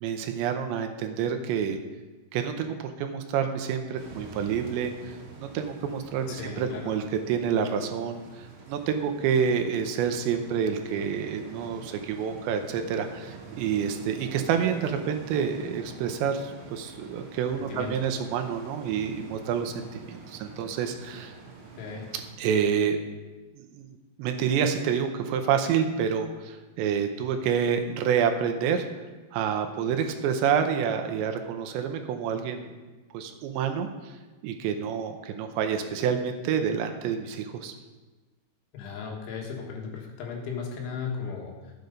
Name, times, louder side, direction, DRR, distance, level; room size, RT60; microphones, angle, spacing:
voice 1, 0.0-1.8 2.3-21.3 22.4-23.0 23.6-28.8 29.3-32.7 33.1-34.1 34.4-37.7, right 7 dB, 85° right, 6 dB, 2.9 m, -28 dB
sound 1, 3.9-22.3, right 4 dB, 50° right, 2.8 m, -46 dB
voice 2, 6.3-7.0 17.6-18.2 21.8-22.1 38.7-41.7, left 5 dB, 85° left, 0 dB, 4.1 m, -36 dB
11.5 x 7.9 x 5.3 m, 1.2 s
omnidirectional pair, 5.3 m